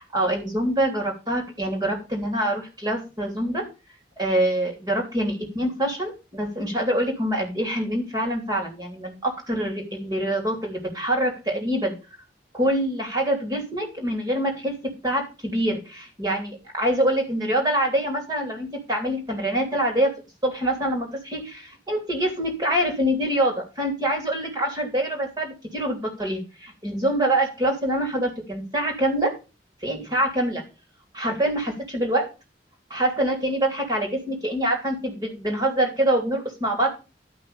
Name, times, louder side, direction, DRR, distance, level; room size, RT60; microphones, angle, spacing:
voice 1, 0.1-3.6 4.2-11.9 12.5-20.1 20.4-29.3 29.8-30.6 31.1-32.3 32.9-36.9, right 1 dB, 25° right, 1 dB, 3.2 m, -25 dB
12.0 x 5.9 x 5.1 m, 0.30 s
head